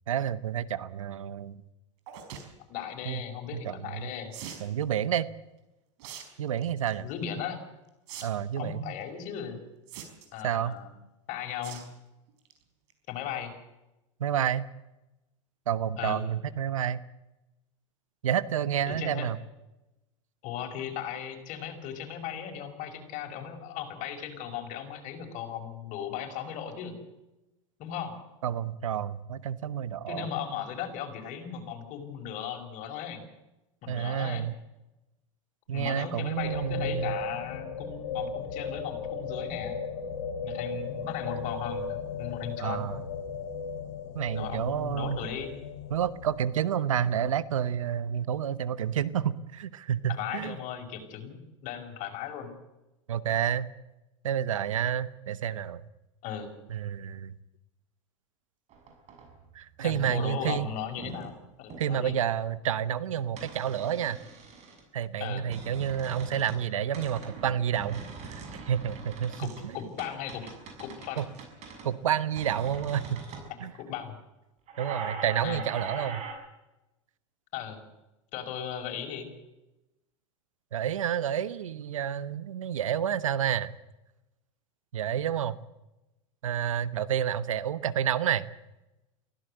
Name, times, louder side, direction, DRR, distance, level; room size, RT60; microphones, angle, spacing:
voice 1, 0.1-1.6 3.1-3.2 3.5-4.1 4.6-5.3 6.4-7.1 8.2-8.8 10.4-10.8 14.2-14.7 15.7-17.0 18.2-19.4 28.4-30.3 33.9-34.5 35.7-37.2 42.6-43.0 44.1-45.2 45.9-50.6 53.1-53.7 54.2-55.8 56.7-57.4 59.5-60.7 61.8-64.2 64.9-69.7 71.2-71.3 71.8-73.2 73.6-73.7 74.8-76.2 80.7-83.7 84.9-85.6 86.4-88.5, right 9 dB, 85° right, 16 dB, 1.1 m, -29 dB
sound 1, 2.1-2.5 4.3-4.7 6.0-6.2 6.6-6.9 8.1-8.2 8.5-8.6 9.9-10.4 11.6-11.9 12.3-12.5 12.9-13.0 13.2-13.3, right 9 dB, 65° right, 4.8 m, -42 dB
voice 2, 2.7-4.3 7.0-7.6 8.6-9.6 10.3-10.9 11.3-11.8 13.1-13.5 16.0-16.2 18.9-19.3 20.4-27.0 27.8-28.2 30.1-33.2 33.8-34.5 35.7-39.8 40.4-42.9 44.3-45.6 50.1-52.5 56.2-56.5 59.8-62.2 65.2-65.5 69.4-70.5 70.8-71.3 73.6-74.2 75.4-75.6 77.5-77.9 78.3-79.3, left 9 dB, 50° left, 4 dB, 5.5 m, -37 dB
sound 2, 36.4-46.4, left 5 dB, 75° left, 3.9 m, -36 dB
sound 3, 58.7-59.6 60.0-60.2 60.5-61.3 61.7-62.1 63.4-64.8 65.3-66.7 66.9-73.5 74.7-76.3, right 4 dB, 45° right, 6.9 m, -42 dB
23.5 x 16.5 x 8.0 m, 0.98 s
hypercardioid pair, 95°, 16 cm